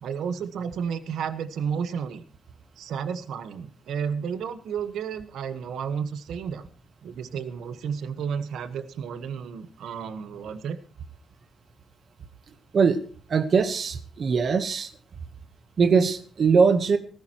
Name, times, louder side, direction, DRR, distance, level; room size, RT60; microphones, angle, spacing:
voice 1, 0.0-2.2 2.8-6.7 7.0-10.8, right 7 dB, 80° right, 11 dB, 1.2 m, -32 dB
voice 2, 13.3-14.9 15.8-17.0, right 5 dB, 40° right, 10 dB, 1.1 m, -21 dB
18.5 x 15.5 x 3.0 m, 0.42 s
wide cardioid pair, 175°, 0 cm